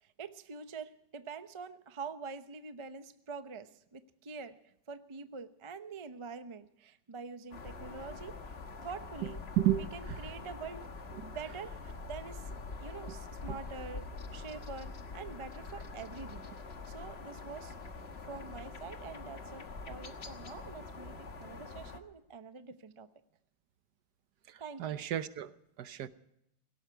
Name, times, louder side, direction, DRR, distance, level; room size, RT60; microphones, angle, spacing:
voice 1, 0.0-4.6 4.9-8.4 8.8-9.4 9.9-10.9 11.2-12.5 12.8-14.1 14.3-16.5 16.9-17.7 18.3-23.1 24.6-25.0, right 5 dB, 35° right, 10 dB, 0.5 m, -45 dB
sound 1, 7.5-22.0, left 3 dB, 40° left, 1.4 m, -45 dB
voice 2, 9.6-10.2 13.1-13.2 13.5-13.6 24.5-26.1, right 13 dB, 70° right, 13 dB, 1.3 m, -33 dB
17.5 x 17.5 x 4.6 m, 0.78 s
omnidirectional pair, 2.0 m